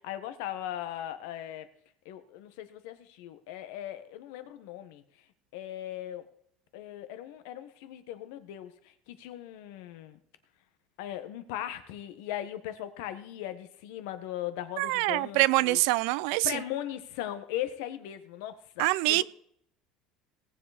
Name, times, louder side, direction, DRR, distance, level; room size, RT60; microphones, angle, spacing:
voice 1, 0.0-1.7 2.0-5.0 5.5-6.3 6.7-8.7 9.1-10.2 11.0-15.8 16.4-19.2, left 12 dB, 80° left, 1.5 m, -38 dB
voice 2, 14.8-16.6 18.8-19.2, right 20 dB, 70° right, 0.4 m, -25 dB
18.0 x 7.6 x 4.3 m
cardioid pair, 175°, 0 cm